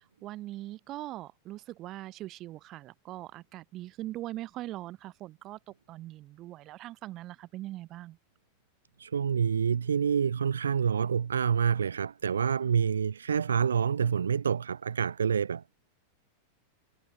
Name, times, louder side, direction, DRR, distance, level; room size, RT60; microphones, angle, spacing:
voice 1, 0.2-5.6 5.9-8.2, right 15 dB, 35° right, 5.0 m, -41 dB
voice 2, 9.0-15.8, right 7 dB, 70° right, 0.9 m, -27 dB
figure-of-eight pair, 90°, 0 cm